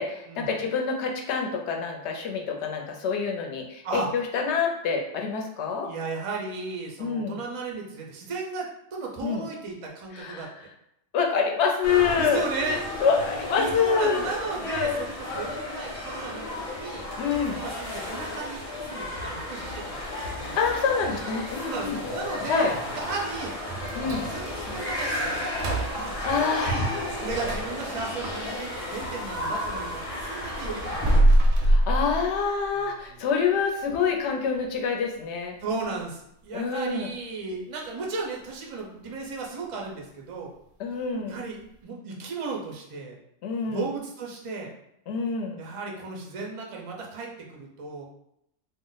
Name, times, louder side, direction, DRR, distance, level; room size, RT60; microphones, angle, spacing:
voice 1, 0.0-5.9 7.0-7.4 9.2-9.4 10.1-10.5 11.1-12.5 13.0-14.3 14.6-15.0 17.2-17.6 20.6-22.0 22.5-22.7 24.0-24.2 26.3-26.8 31.6-35.5 36.5-37.1 40.8-41.4 43.4-43.8 45.1-45.6, left 5 dB, 70° left, 2 dB, 0.8 m, -26 dB
voice 2, 5.8-10.5 12.2-12.8 13.6-17.0 17.5-20.6 21.6-23.6 24.3-26.8 27.2-31.4 32.7-33.2 35.6-40.5 41.3-43.2 43.7-44.7 45.6-48.0, right 4 dB, 55° right, -1 dB, 0.3 m, -35 dB
sound 1, 11.8-31.2, left 1 dB, 35° left, 0.8 m, -33 dB
sound 2, 23.7-29.6 30.0-32.8 33.2-33.3 33.8-33.9 34.4-34.7 35.0-35.1 35.7-35.8, right 1 dB, 90° right, 0.9 m, -26 dB
2.4 x 2.0 x 3.8 m, 0.78 s
omnidirectional pair, 1.3 m